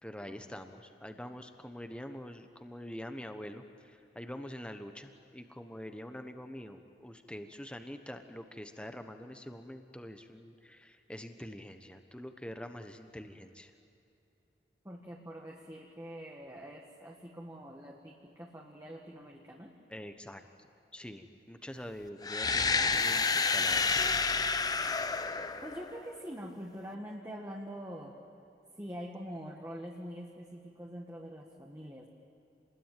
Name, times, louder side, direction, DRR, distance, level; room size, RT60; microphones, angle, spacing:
voice 1, 0.0-13.7 19.9-20.4 20.9-24.0, equal, 5° left, 7 dB, 1.2 m, -45 dB
voice 2, 14.8-19.7 25.6-28.1 28.8-32.1, equal, 15° right, -1 dB, 1.7 m, -44 dB
sound 1, 22.2-26.2, left 4 dB, 20° left, 0.7 m, -29 dB
28.0 x 20.5 x 9.3 m, 2.7 s
head